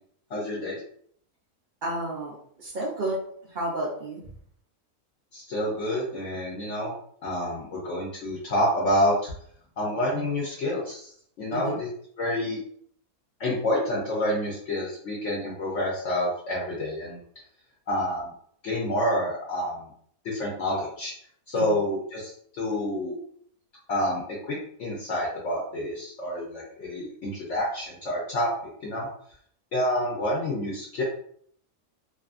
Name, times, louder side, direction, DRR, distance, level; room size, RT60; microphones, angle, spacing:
voice 1, 0.3-0.8 5.3-6.9 7.2-9.3 9.8-11.0 11.4-11.9 12.2-12.6 13.4-17.2 17.9-18.3 18.6-19.7 20.3-21.1 21.5-22.3 22.6-23.2 23.9-24.2 24.5-28.5 28.8-29.1 29.7-31.0, left 1 dB, 60° left, -5 dB, 0.9 m, -28 dB
voice 2, 1.8-3.2 3.5-4.3 11.5-11.8 21.5-21.8, right 1 dB, 80° right, -4 dB, 0.4 m, -31 dB
2.6 x 2.4 x 2.4 m, 0.63 s
omnidirectional pair, 1.6 m